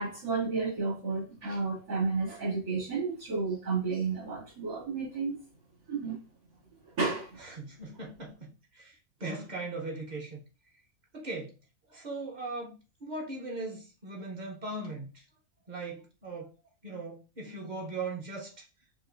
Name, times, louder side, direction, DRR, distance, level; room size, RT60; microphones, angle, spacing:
voice 1, 0.0-5.4 5.9-6.2 7.0-7.4, right 4 dB, 85° right, 2.7 m, -32 dB
voice 2, 7.4-10.4 11.1-11.5 11.9-15.2 15.7-16.5 16.8-18.6, right 2 dB, 40° right, 0.7 m, -39 dB
5.8 x 2.5 x 2.5 m
omnidirectional pair, 1.5 m